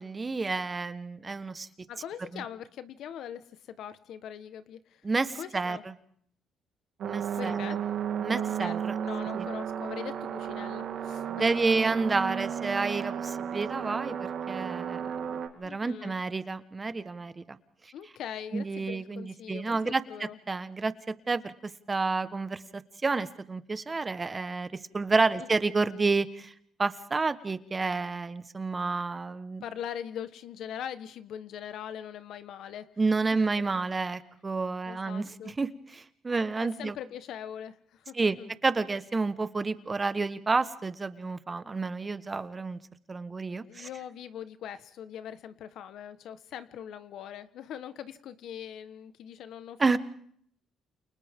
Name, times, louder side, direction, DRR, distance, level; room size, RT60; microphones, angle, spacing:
voice 1, 0.0-1.7 2.3-2.4 5.0-5.8 7.1-7.8 8.2-8.9 9.3-9.5 11.3-15.0 15.6-17.6 18.5-20.0 20.5-20.9 21.3-26.5 26.8-29.6 33.0-36.9 38.1-42.8 43.1-43.9 49.8-50.0, right 3 dB, 25° right, 12 dB, 1.3 m, -30 dB
voice 2, 1.9-5.0 5.4-5.8 7.3-7.9 8.3-11.5 15.6-16.1 17.9-20.4 25.4-25.5 25.8-25.9 29.6-32.9 33.3-33.5 34.8-35.5 36.8-38.5 43.5-50.0, left 9 dB, 75° left, 12 dB, 1.3 m, -42 dB
sound 1, 7.0-15.5, right 8 dB, 70° right, 2.9 m, -33 dB
29.0 x 29.0 x 3.7 m, 0.63 s
cardioid pair, 90°, 0 cm